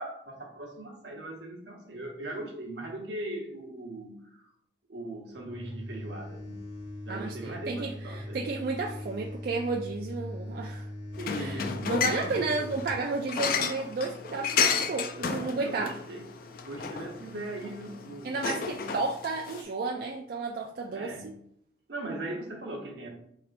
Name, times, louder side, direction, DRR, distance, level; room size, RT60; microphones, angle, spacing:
voice 1, 0.0-4.5 4.9-6.6 7.0-8.4 11.2-12.7 15.1-16.2 16.7-18.9 20.9-21.3 21.9-23.1, right 1 dB, 75° right, 0 dB, 1.0 m, -40 dB
sound 1, 5.3-12.9, left 1 dB, 90° left, 1.3 m, -40 dB
voice 2, 7.1-10.9 11.3-15.9 18.2-21.3, right 3 dB, 55° right, 0 dB, 0.3 m, -32 dB
sound 2, 11.1-19.6, left 6 dB, 50° left, 0.3 m, -32 dB
4.2 x 3.2 x 2.5 m, 0.71 s
head